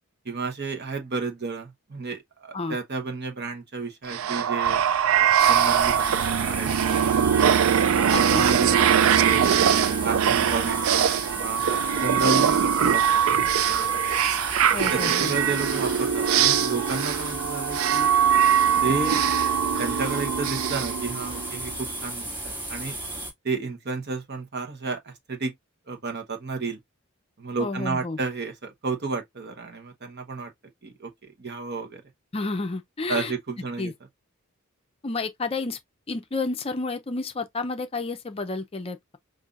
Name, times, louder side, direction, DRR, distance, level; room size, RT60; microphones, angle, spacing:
voice 1, 0.2-4.8 5.2-6.1 6.5-7.0 7.9-13.0 13.4-13.9 14.9-18.1 18.8-19.3 19.6-23.0 23.4-25.5 25.9-26.8 27.4-30.5 30.8-31.1 31.4-32.0 33.1-33.9, right 4 dB, 50° right, 1.0 m, -32 dB
sound 1, 4.1-21.7, right 8 dB, 75° right, 0.4 m, -22 dB
sound 2, 5.4-23.3, right 1 dB, 25° right, 2.1 m, -35 dB
voice 2, 8.1-8.4 14.7-15.4 27.6-28.2 32.3-33.3 33.8-33.9 35.0-35.8 36.1-39.2, left 3 dB, 30° left, 0.5 m, -30 dB
5.4 x 2.5 x 2.4 m
head